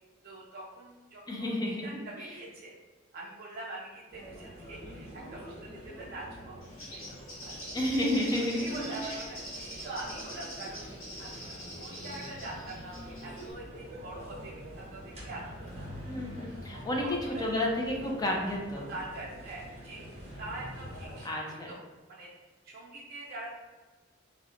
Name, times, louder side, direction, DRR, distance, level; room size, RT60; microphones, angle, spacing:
voice 1, 0.2-2.7 3.1-6.6 6.9-10.8 11.2-15.9 16.7-17.6 18.9-20.0 20.4-21.8 22.1-22.3 22.6-23.5, right 2 dB, 50° right, -5 dB, 0.4 m, -44 dB
voice 2, 1.3-2.0 7.7-8.8 16.1-17.1 17.4-18.9 21.2-21.7, left 1 dB, 20° left, -1 dB, 0.4 m, -31 dB
sound 1, 4.1-21.2, equal, 35° right, 0.8 m, -46 dB
Bird, 6.6-13.5, equal, 90° left, 1.0 m, -44 dB
2.8 x 2.1 x 2.4 m, 1.3 s
head